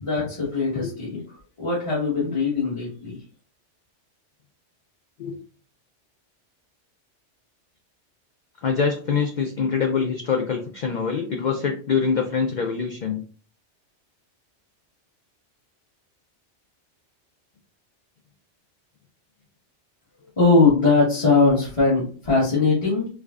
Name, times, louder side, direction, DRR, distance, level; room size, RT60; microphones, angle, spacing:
voice 1, 0.0-1.2 1.6-3.2 20.4-23.1, left 3 dB, 25° left, -9 dB, 1.3 m, -20 dB
voice 2, 8.6-13.2, left 6 dB, 60° left, 3 dB, 0.5 m, -24 dB
4.6 x 2.4 x 2.4 m, 0.40 s
omnidirectional pair, 1.2 m